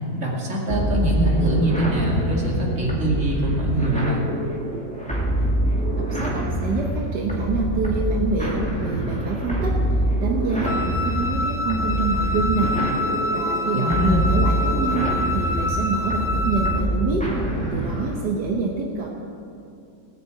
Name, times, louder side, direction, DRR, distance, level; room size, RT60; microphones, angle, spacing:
voice 1, 0.1-4.3 13.7-14.2, right 1 dB, 45° right, -2 dB, 2.6 m, -23 dB
sound 1, 0.7-18.3, right 1 dB, 5° left, 1.8 m, -25 dB
voice 2, 6.0-9.8 10.2-12.8 13.3-17.2 17.7-19.1, right 4 dB, 75° right, 0 dB, 1.8 m, -26 dB
Wind instrument woodwind instrument, 10.6-16.9, left 2 dB, 65° left, 0.4 m, -27 dB
18.0 x 7.0 x 8.1 m, 2.5 s
omnidirectional pair, 1.8 m